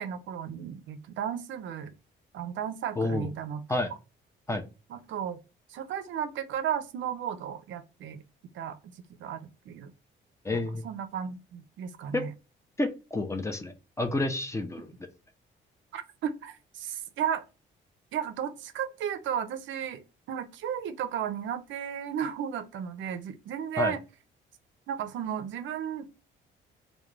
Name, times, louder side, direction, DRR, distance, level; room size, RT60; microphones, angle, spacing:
voice 1, 0.0-1.9 2.3-3.8 4.9-5.4 5.7-8.2 8.5-8.9 9.2-9.9 10.5-12.3 15.9-17.4 18.1-24.0 24.9-26.3, right 9 dB, 70° right, 0.4 m, -34 dB
voice 2, 3.0-3.3 3.7-3.9 4.5-4.6 10.4-10.8 12.1-12.2 12.8-12.9 13.1-14.9 23.8-23.9, left 2 dB, 15° left, 0.4 m, -29 dB
2.3 x 2.1 x 3.0 m
cardioid pair, 90°, 20 cm